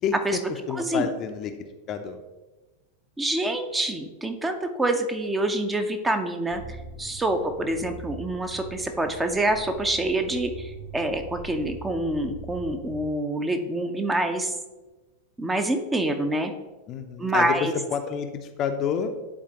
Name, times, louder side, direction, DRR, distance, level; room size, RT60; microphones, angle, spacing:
voice 1, 0.0-2.2 16.9-19.1, left 7 dB, 35° left, 7 dB, 0.6 m, -29 dB
voice 2, 3.2-6.6 7.0-14.5 15.4-16.5 17.2-17.7, right 1 dB, 10° right, 6 dB, 0.6 m, -26 dB
sound 1, 6.5-13.1, right 3 dB, 45° right, 0.9 m, -42 dB
10.5 x 4.1 x 2.9 m, 1.2 s
figure-of-eight pair, 90°, 0 cm